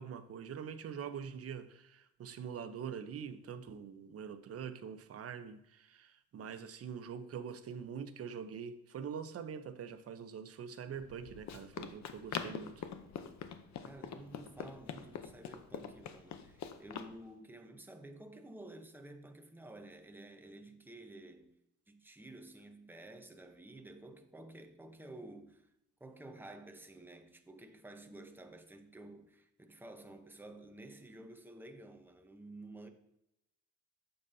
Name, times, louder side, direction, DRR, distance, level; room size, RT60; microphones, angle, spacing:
voice 1, 0.0-12.9, right 7 dB, 50° right, 0.8 m, -44 dB
Run, 10.9-17.1, left 8 dB, 65° left, 0.8 m, -44 dB
voice 2, 13.8-21.6 21.9-25.7 26.0-32.9, right 2 dB, 5° right, 0.8 m, -52 dB
9.1 x 6.8 x 2.7 m
cardioid pair, 90°, 30 cm